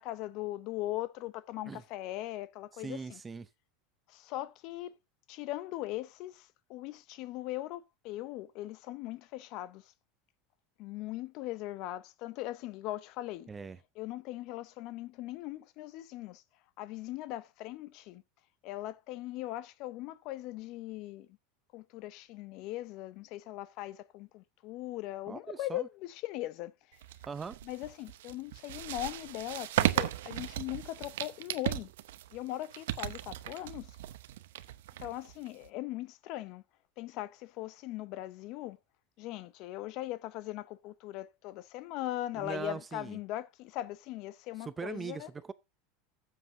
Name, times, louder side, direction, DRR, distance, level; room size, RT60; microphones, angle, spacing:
voice 1, 0.0-3.2 4.1-5.0 5.3-9.8 10.8-13.5 14.0-16.4 16.8-18.2 18.6-21.3 21.7-26.7 27.6-31.9 32.3-34.0 35.0-36.6 37.0-38.8 39.2-45.3, left 15 dB, 50° left, 0.6 m, -40 dB
voice 2, 2.7-3.5 13.5-13.8 25.3-25.9 27.3-27.6 42.3-43.2 44.6-45.5, right 5 dB, 15° right, 0.6 m, -41 dB
sound 1, 27.0-35.7, right 14 dB, 90° right, 0.7 m, -36 dB
15.5 x 7.6 x 2.7 m
supercardioid pair, 145°, 0 cm